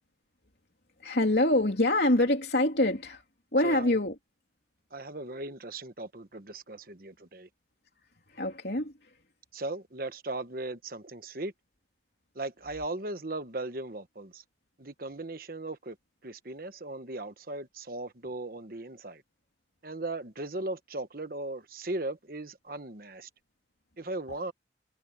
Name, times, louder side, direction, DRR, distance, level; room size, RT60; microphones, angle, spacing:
voice 1, 1.0-3.2 3.5-4.1 5.2-5.4 8.3-8.9 24.3-24.4, left 1 dB, 60° left, 3.3 m, -25 dB
voice 2, 3.6-4.0 4.9-7.5 9.5-11.5 12.3-14.4 14.8-16.0 16.2-19.2 19.8-23.3 24.0-24.5, right 2 dB, 50° right, 1.3 m, -37 dB
head